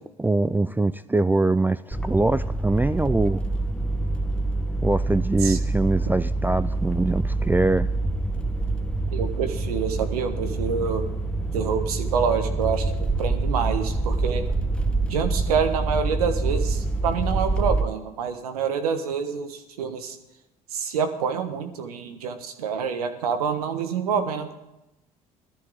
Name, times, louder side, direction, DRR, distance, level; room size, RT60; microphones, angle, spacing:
voice 1, 0.2-3.4 4.8-7.9, right 2 dB, 10° right, 15 dB, 0.4 m, -23 dB
sound 1, 1.9-17.8, right 2 dB, 5° left, 1.4 m, -26 dB
voice 2, 9.1-11.0 11.5-14.5 15.1-20.2 20.7-24.5, right 6 dB, 85° right, 8 dB, 1.3 m, -27 dB
17.5 x 13.5 x 3.9 m, 0.92 s
hypercardioid pair, 60°, 19 cm